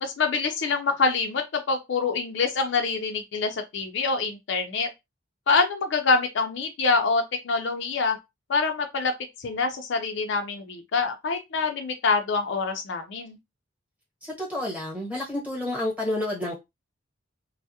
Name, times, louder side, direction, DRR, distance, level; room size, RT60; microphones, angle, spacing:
voice 1, 0.0-4.9 5.5-8.2 8.5-9.1 9.4-13.4, left 4 dB, 60° left, 0.4 m, -25 dB
voice 2, 14.2-16.5, left 1 dB, 10° right, 1.0 m, -29 dB
2.2 x 2.0 x 2.7 m
head